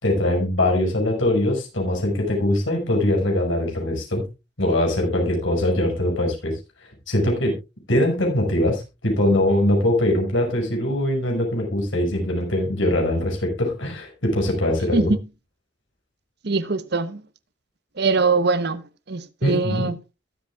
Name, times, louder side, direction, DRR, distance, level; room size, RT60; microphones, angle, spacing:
voice 1, 0.0-4.3 4.6-6.6 7.1-7.5 7.9-15.1 19.4-19.9, left 1 dB, 90° left, 5.7 m, -22 dB
voice 2, 16.4-17.2 18.0-18.8 19.1-19.9, right 4 dB, 55° right, 0.9 m, -22 dB
22.0 x 8.0 x 2.3 m
head